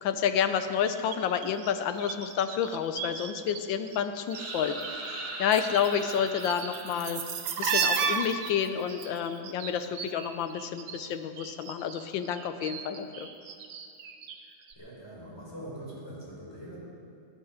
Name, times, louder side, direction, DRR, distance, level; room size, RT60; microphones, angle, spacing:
voice 1, 0.0-7.2 7.6-13.3, left 8 dB, 70° left, 9 dB, 1.4 m, -30 dB
sound 1, 0.9-3.6 3.9-4.9 5.1-11.1 11.4-14.4 14.7-14.8, right 6 dB, 70° right, 1.7 m, -34 dB
sound 2, 4.3-8.1, right 2 dB, 85° right, 2.7 m, -40 dB
voice 2, 14.8-16.8, right 1 dB, 10° left, -6 dB, 4.4 m, -43 dB
19.0 x 10.5 x 5.0 m, 2.4 s
omnidirectional pair, 2.3 m